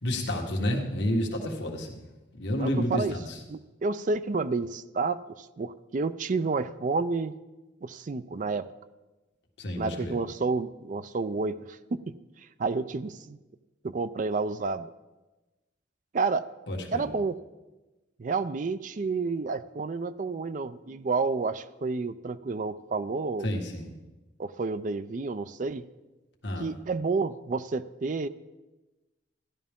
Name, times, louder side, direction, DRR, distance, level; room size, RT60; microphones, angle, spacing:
voice 1, 0.0-2.0 2.3-3.4 9.6-10.2 16.7-17.1 23.4-23.9 26.4-26.7, left 1 dB, 70° left, 0 dB, 1.6 m, -30 dB
voice 2, 2.5-3.1 3.5-7.3 7.8-8.7 9.8-12.1 12.6-13.4 13.8-14.9 16.1-16.4 16.9-17.4 18.2-23.5 24.4-25.8 26.6-28.3, right 4 dB, 45° right, 14 dB, 0.4 m, -30 dB
15.0 x 11.0 x 3.6 m, 1.1 s
head